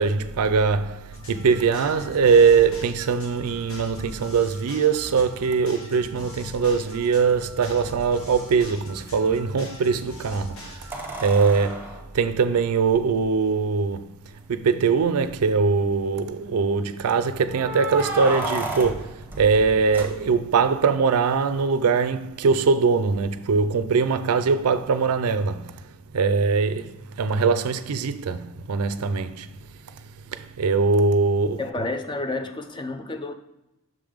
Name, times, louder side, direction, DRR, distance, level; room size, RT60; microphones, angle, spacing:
voice 1, 0.0-14.1 14.5-25.8 26.1-29.5 30.3-31.6, right 5 dB, 85° right, 0.4 m, -22 dB
sound 1, 1.1-11.0, left 1 dB, 65° left, 1.0 m, -42 dB
sound 2, 10.9-13.3 14.3-14.4 14.6-14.7 15.3-15.8 17.5-20.6 23.1-23.2, right 2 dB, 10° right, 0.9 m, -33 dB
voice 2, 31.6-33.3, left 2 dB, 20° left, 0.5 m, -30 dB
6.4 x 3.5 x 5.0 m
head